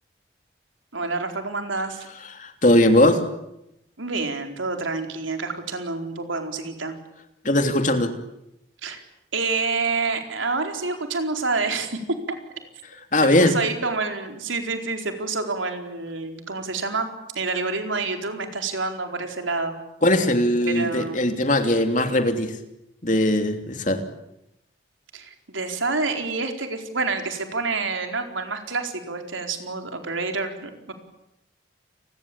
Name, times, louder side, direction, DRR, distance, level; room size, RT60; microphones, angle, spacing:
voice 1, 0.9-2.1 4.0-6.9 8.8-9.0 9.3-12.0 12.3-12.4 13.2-17.1 17.3-19.8 20.6-21.3 25.1-30.9, right 3 dB, 90° right, 5 dB, 4.4 m, -28 dB
voice 2, 2.3-3.2 7.4-8.1 13.1-13.5 20.0-22.6 23.0-24.0, left 1 dB, 40° left, 6 dB, 3.0 m, -20 dB
29.5 x 21.0 x 8.7 m, 0.84 s
head